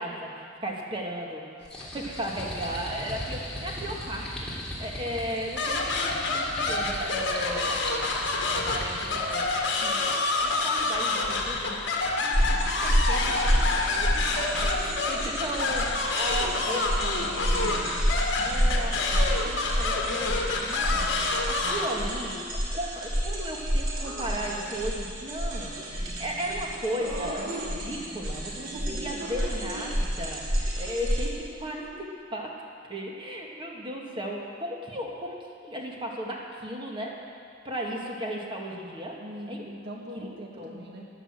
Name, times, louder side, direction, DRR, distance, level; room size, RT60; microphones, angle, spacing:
voice 1, 0.0-1.4 1.8-4.5 4.8-8.2 8.5-11.9 12.2-17.0 17.6-17.8 18.4-32.5 32.9-37.2 37.6-39.2 39.5-39.6 40.1-40.3 40.6-40.7, equal, 25° right, -1 dB, 1.9 m, -36 dB
sound 1, 1.6-9.5, left 1 dB, 5° left, 3.1 m, -38 dB
sound 2, 5.6-21.9, left 3 dB, 60° left, 1.7 m, -28 dB
sound 3, 12.3-31.3, equal, 85° right, 3.3 m, -29 dB
voice 2, 16.3-18.0 21.6-21.9 39.2-41.1, equal, 60° right, -2 dB, 1.9 m, -41 dB
14.5 x 10.0 x 7.6 m, 2.3 s
head